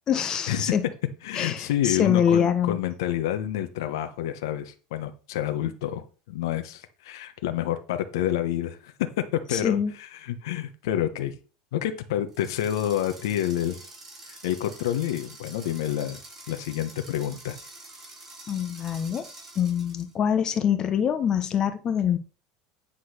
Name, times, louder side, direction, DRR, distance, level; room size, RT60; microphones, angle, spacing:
voice 1, 0.1-0.9 1.3-2.8 9.5-9.9 18.5-19.3 19.6-22.2, left 8 dB, 30° left, 0.9 m, -24 dB
voice 2, 1.2-8.9 9.5-11.3 11.7-13.8 14.3-16.2 16.5-17.6, left 11 dB, 85° left, 1.2 m, -28 dB
sound 1, 12.3-20.1, right 2 dB, 25° right, 4.2 m, -46 dB
10.0 x 4.0 x 6.5 m
supercardioid pair, 135°, 2 cm